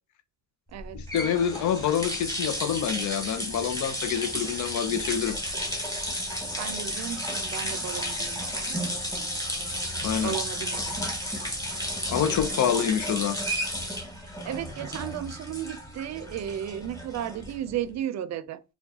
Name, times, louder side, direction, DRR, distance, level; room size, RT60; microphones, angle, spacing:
sound 1, 0.8-17.8, equal, 10° left, 1.2 m, -33 dB
voice 1, 0.9-5.4 10.0-10.4 12.1-13.4, left 9 dB, 70° left, 0.6 m, -27 dB
voice 2, 6.6-9.0 10.2-11.0 12.3-12.7 14.4-18.6, right 10 dB, 60° right, 0.5 m, -35 dB
4.5 x 2.3 x 2.7 m
cardioid pair, 90°, 30 cm